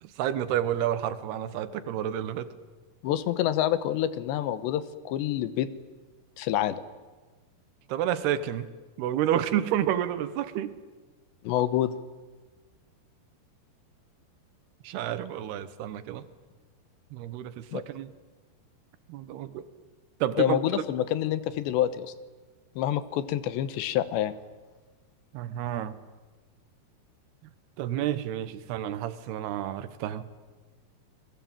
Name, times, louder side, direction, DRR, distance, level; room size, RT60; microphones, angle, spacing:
voice 1, 0.0-2.5 7.9-8.7 9.0-10.7 14.8-16.3 17.1-18.1 19.1-19.6 20.2-20.6 25.3-26.0 27.8-30.3, right 11 dB, 70° right, 13 dB, 3.1 m, -30 dB
voice 2, 3.0-5.7 6.4-6.8 11.4-11.9 17.7-17.8 20.4-22.1 22.8-24.4, left 12 dB, 90° left, 14 dB, 3.3 m, -27 dB
29.5 x 21.0 x 9.0 m, 1.3 s
omnidirectional pair, 5.0 m